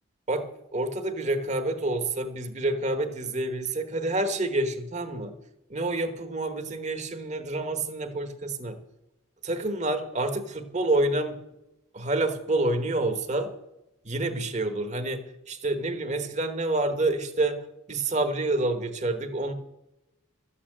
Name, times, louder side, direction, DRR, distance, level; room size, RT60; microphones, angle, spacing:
voice 1, 0.7-5.4 5.7-8.8 9.4-11.4 11.9-13.5 14.0-17.6 17.9-19.5, right 2 dB, 30° right, 8 dB, 1.2 m, -28 dB
13.0 x 8.7 x 7.5 m, 0.92 s
head